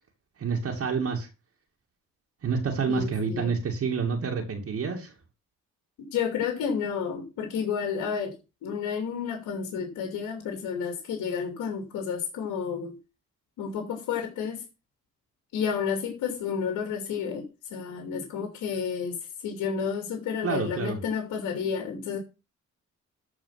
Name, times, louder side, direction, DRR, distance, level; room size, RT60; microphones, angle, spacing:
voice 1, 0.4-1.3 2.4-5.1 20.4-21.0, right 5 dB, 50° right, 1 dB, 2.6 m, -28 dB
voice 2, 2.9-3.5 6.1-8.4 8.6-12.9 13.6-14.6 15.5-22.2, left 6 dB, 90° left, 4 dB, 2.9 m, -31 dB
13.5 x 5.0 x 5.8 m, 0.29 s
cardioid pair, 90°, 30 cm